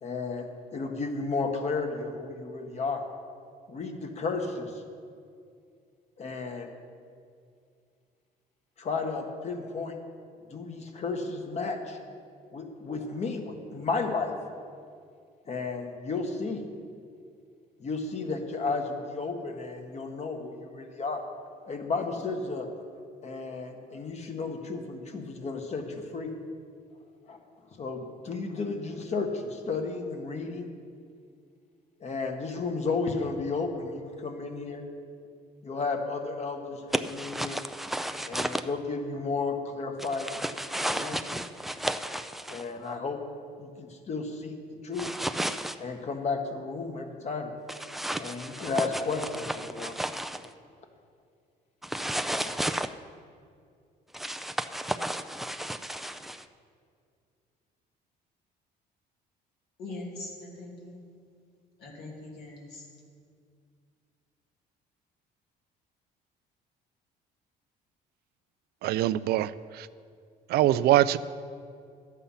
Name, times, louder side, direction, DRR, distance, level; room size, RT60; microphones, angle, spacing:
voice 1, 0.0-3.0 3.7-4.7 6.2-6.7 8.8-9.9 10.5-12.0 12.5-14.3 15.5-16.6 17.8-21.2 21.6-22.7 23.2-26.3 27.3-27.4 27.8-30.7 32.0-34.8 35.6-37.6 38.3-40.3 40.9-41.4 42.0-42.2 42.5-43.2 43.6-44.5 44.8-45.1 45.8-47.5 48.2-50.2, left 4 dB, 40° left, 4 dB, 1.4 m, -33 dB
sound 1, 36.9-38.6 40.0-42.6 45.0-45.8 47.7-50.5 51.8-52.9 54.1-56.4, right 1 dB, ahead, 0.3 m, -33 dB
voice 2, 59.8-61.0 61.8-62.8, left 2 dB, 75° left, -2 dB, 2.8 m, -41 dB
voice 3, 68.8-69.9 70.5-71.2, right 14 dB, 70° right, 16 dB, 0.4 m, -23 dB
11.5 x 8.2 x 5.6 m, 2.3 s
cardioid pair, 110°, 17 cm